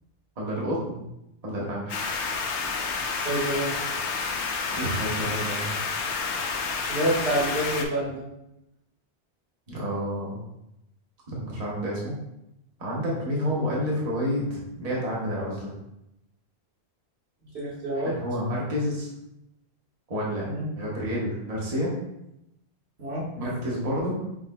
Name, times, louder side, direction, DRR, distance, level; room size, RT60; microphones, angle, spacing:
voice 1, 0.4-1.0 1.4-2.0 4.7-5.7 9.7-10.4 11.3-12.2 12.8-15.7 18.0-19.1 20.1-20.5 20.8-21.9 23.4-24.2, equal, 35° right, -5 dB, 1.1 m, -29 dB
sound 1, 1.9-7.8, left 4 dB, 85° left, 0.9 m, -29 dB
voice 2, 3.2-3.8 6.9-8.3 13.5-13.7 17.5-18.2 20.4-20.7 23.0-23.3, right 1 dB, 75° right, -6 dB, 1.7 m, -27 dB
6.2 x 3.3 x 2.2 m, 0.86 s
omnidirectional pair, 1.1 m